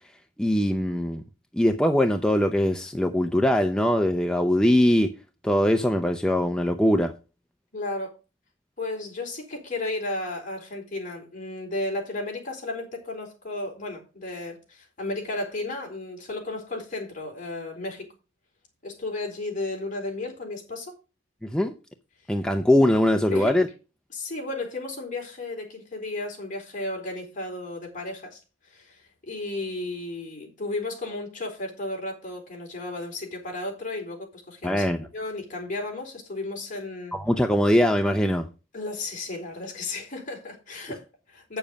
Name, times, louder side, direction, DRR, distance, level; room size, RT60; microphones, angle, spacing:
voice 1, 0.4-1.2 1.5-5.1 5.4-7.1 21.4-21.7 22.3-23.7 34.6-35.1 37.1-38.5, left 1 dB, 5° left, 0.6 m, -22 dB
voice 2, 7.7-8.1 8.8-18.1 18.8-20.9 23.3-23.5 24.1-28.4 28.7-34.9 35.1-37.2 38.7-41.6, left 2 dB, 45° left, 4.2 m, -34 dB
8.7 x 7.1 x 5.3 m
head